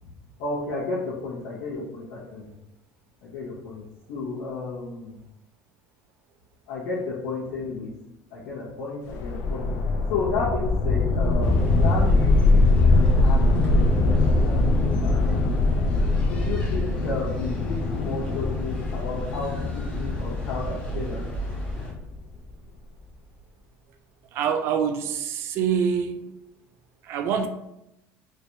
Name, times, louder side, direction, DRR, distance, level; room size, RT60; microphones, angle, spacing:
voice 1, 0.4-2.5 3.2-3.8 4.1-5.2 6.7-7.9 8.3-9.7 10.1-15.3 16.3-21.3, left 3 dB, 90° left, -9 dB, 1.1 m, -32 dB
sound 1, 9.1-22.2, left 2 dB, 55° left, 0.4 m, -22 dB
sound 2, 11.4-21.9, left 1 dB, 20° left, 0.7 m, -35 dB
voice 2, 24.3-26.3 27.0-27.5, right 7 dB, 50° right, 6 dB, 0.4 m, -25 dB
3.3 x 3.0 x 2.7 m, 0.86 s
cardioid pair, 160°, 6 cm